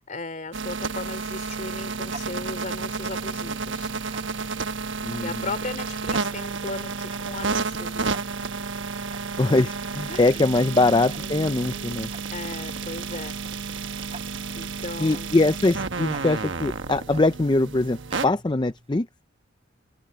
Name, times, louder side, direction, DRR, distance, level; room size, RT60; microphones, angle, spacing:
voice 1, 0.0-3.9 5.2-8.5 10.1-10.4 10.9-12.0 12.3-13.4 13.8-14.0 14.5-15.6, left 3 dB, 40° left, 3.2 m, -37 dB
sound 1, 0.5-18.3, right 4 dB, 65° right, 1.2 m, -31 dB
Tick-tock, 0.8-19.1, right 2 dB, 30° right, 4.2 m, -47 dB
voice 2, 5.0-5.4 9.4-12.1 15.0-19.1, left 2 dB, 20° left, 0.5 m, -22 dB
open air
head